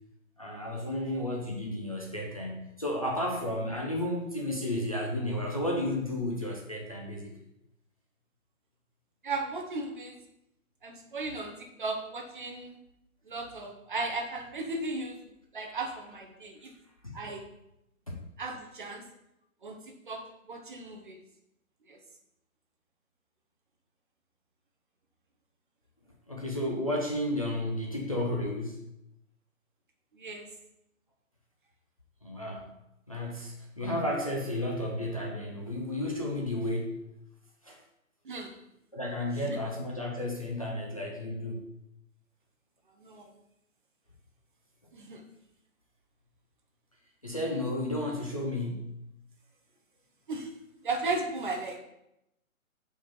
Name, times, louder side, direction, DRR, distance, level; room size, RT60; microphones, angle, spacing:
voice 1, 0.4-7.3 17.0-17.2 18.1-18.2 26.3-28.9 32.2-32.7 33.1-37.1 37.6-37.8 38.9-41.7 47.2-48.9, left 1 dB, 25° left, -1 dB, 0.5 m, -32 dB
voice 2, 9.2-10.2 10.8-12.8 13.3-15.2 15.5-16.7 17.1-17.5 18.4-19.0 19.6-21.2 21.9-22.0 30.1-30.5 38.2-38.5 39.5-39.6 43.0-43.3 44.9-45.2 50.3-50.5 50.8-51.8, right 3 dB, 35° right, 3 dB, 0.9 m, -36 dB
5.0 x 4.5 x 5.5 m, 0.84 s
hypercardioid pair, 165°, 42 cm